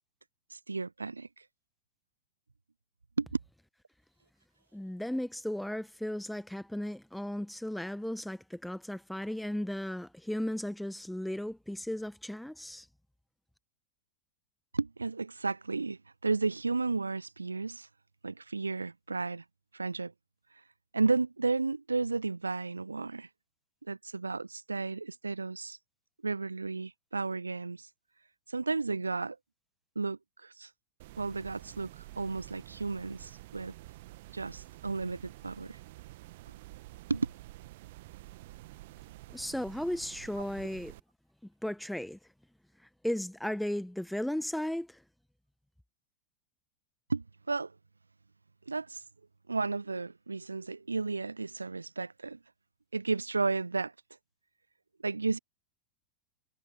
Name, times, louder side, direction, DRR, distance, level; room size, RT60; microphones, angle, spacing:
voice 1, 0.5-1.4 3.2-3.3 14.7-17.9 18.2-19.4 19.7-20.1 20.9-23.3 23.9-25.8 26.2-27.9 28.5-29.4 30.0-30.7 31.2-33.7 34.3-35.8 37.1-37.3 47.1-47.7 48.7-49.0 49.5-52.4 52.9-53.9 55.0-55.4, right 3 dB, 80° right, 0.4 m, -33 dB
voice 2, 4.7-12.9 39.3-40.9 41.6-42.2 43.0-45.0, left 1 dB, ahead, 1.8 m, -35 dB
sound 1, 31.0-41.0, right 18 dB, 50° right, 1.7 m, -50 dB
figure-of-eight pair, 90°, 0 cm